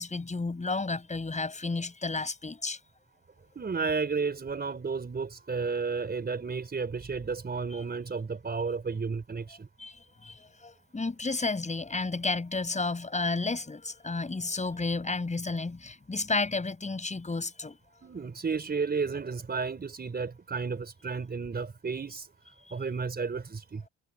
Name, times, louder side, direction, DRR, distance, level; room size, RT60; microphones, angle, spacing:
voice 1, 0.0-2.8 9.8-17.8, left 3 dB, 25° left, 7.5 m, -32 dB
voice 2, 3.5-9.7 18.0-22.3 22.7-23.8, right 5 dB, 30° right, 4.7 m, -32 dB
cardioid pair, 90°, 30 cm